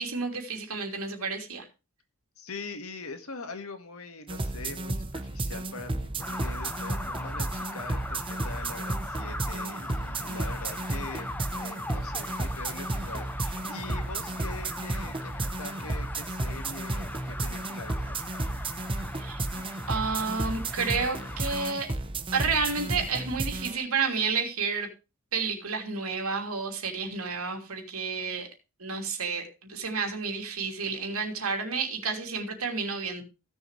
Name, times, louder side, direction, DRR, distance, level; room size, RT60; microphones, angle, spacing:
voice 1, 0.0-1.7 19.2-19.4 19.9-21.9 22.3-24.9 25.3-28.5 28.8-33.2, right 5 dB, 75° right, 2.9 m, -30 dB
voice 2, 2.4-18.2, left 3 dB, 75° left, 1.8 m, -43 dB
sound 1, 4.3-23.8, right 2 dB, 25° right, 0.8 m, -33 dB
sound 2, 6.2-21.7, left 1 dB, 10° left, 0.6 m, -40 dB
16.0 x 7.1 x 3.2 m
head